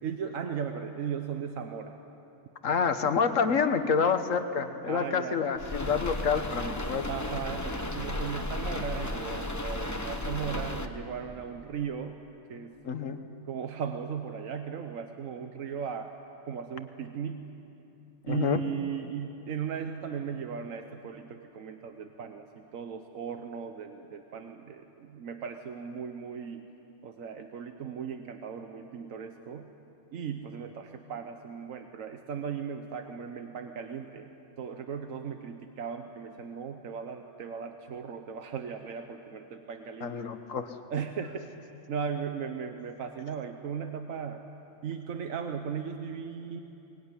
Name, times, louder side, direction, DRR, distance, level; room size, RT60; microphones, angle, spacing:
voice 1, 0.0-2.0 4.8-5.4 7.1-12.2 12.5-12.7 13.4-16.1 16.5-17.5 18.3-22.5 22.7-26.7 27.0-29.7 30.1-34.3 34.6-40.2 40.9-41.5 41.9-44.4 44.8-46.6, right 7 dB, 85° right, 6 dB, 1.4 m, -37 dB
voice 2, 2.6-7.1 12.8-13.2 18.3-18.6 40.0-40.7, left 6 dB, 80° left, 9 dB, 1.5 m, -28 dB
sound 1, 5.6-10.9, left 1 dB, 15° left, 1.1 m, -34 dB
23.0 x 21.0 x 9.8 m, 3.0 s
omnidirectional pair, 1.3 m